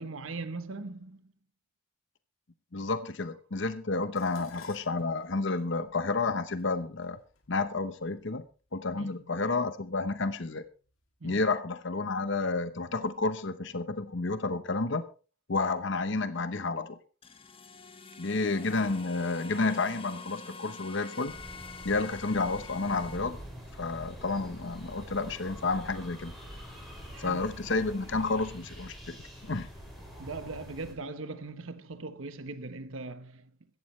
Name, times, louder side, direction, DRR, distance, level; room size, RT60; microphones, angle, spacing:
voice 1, 0.0-1.3 8.9-9.2 11.2-11.4 27.1-27.5 30.2-33.5, right 3 dB, 70° right, 1.0 m, -40 dB
voice 2, 2.7-7.2 7.5-8.4 8.7-10.6 11.2-15.0 15.5-17.0 18.2-21.3 21.8-23.4 23.8-26.3 27.2-29.2 29.4-29.7, left 3 dB, 60° left, 1.0 m, -30 dB
Dishes pots and pans, 4.2-8.5 9.4-9.8 10.2-11.0 11.3-11.4, left 5 dB, 75° left, 2.6 m, -56 dB
sound 1, 17.2-23.2, left 4 dB, 25° left, 1.0 m, -46 dB
sound 2, 21.3-30.9, equal, ahead, 6.0 m, -45 dB
16.0 x 14.0 x 3.2 m
head